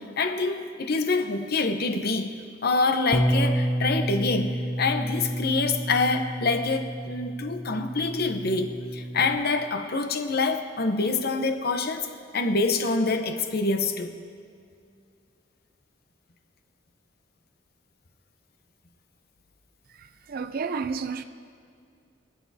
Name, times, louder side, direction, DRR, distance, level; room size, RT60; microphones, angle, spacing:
voice 1, 0.0-2.3 2.6-12.1 12.3-14.1, left 3 dB, 55° left, 0.9 m, -26 dB
Bass guitar, 3.1-9.4, right 1 dB, 15° left, 0.6 m, -29 dB
voice 2, 20.0-21.2, right 5 dB, 50° right, 0.5 m, -31 dB
24.5 x 8.2 x 2.8 m
head